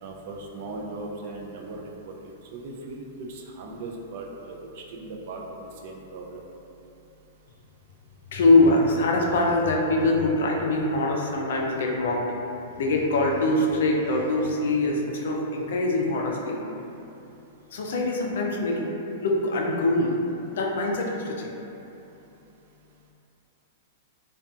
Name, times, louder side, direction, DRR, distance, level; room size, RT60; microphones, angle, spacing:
voice 1, 0.0-1.8 2.5-6.4, right 2 dB, 55° right, 0 dB, 0.3 m, -38 dB
voice 2, 8.3-12.2 12.8-16.6 17.7-18.9 19.2-21.5, left 2 dB, 75° left, -1 dB, 0.4 m, -23 dB
2.4 x 2.2 x 2.6 m, 2.9 s
hypercardioid pair, 145°, 0 cm